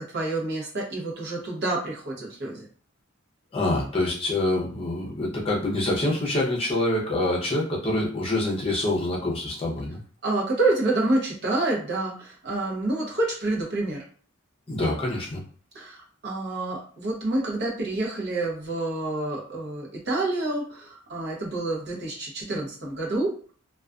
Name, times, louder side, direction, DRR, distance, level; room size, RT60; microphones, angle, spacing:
voice 1, 0.0-2.6 10.2-14.0 15.7-23.3, right 2 dB, 55° right, -2 dB, 0.8 m, -28 dB
voice 2, 3.5-10.0 14.7-15.4, left 1 dB, 30° left, -3 dB, 0.6 m, -26 dB
2.3 x 2.3 x 2.4 m, 0.44 s
head